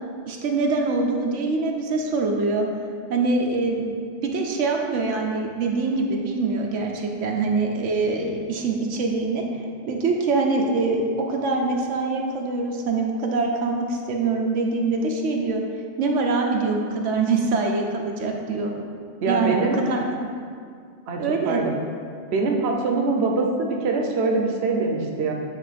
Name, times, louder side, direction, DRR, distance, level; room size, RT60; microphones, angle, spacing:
voice 1, 0.3-2.7 3.1-9.4 9.9-15.6 16.0-18.7 19.3-20.3 21.2-21.6, right 3 dB, 90° right, 1 dB, 1.1 m, -24 dB
voice 2, 19.2-19.8 21.1-21.7 22.3-25.3, right 3 dB, 65° right, 1 dB, 1.0 m, -23 dB
8.4 x 3.4 x 5.0 m, 2.2 s
omnidirectional pair, 1.2 m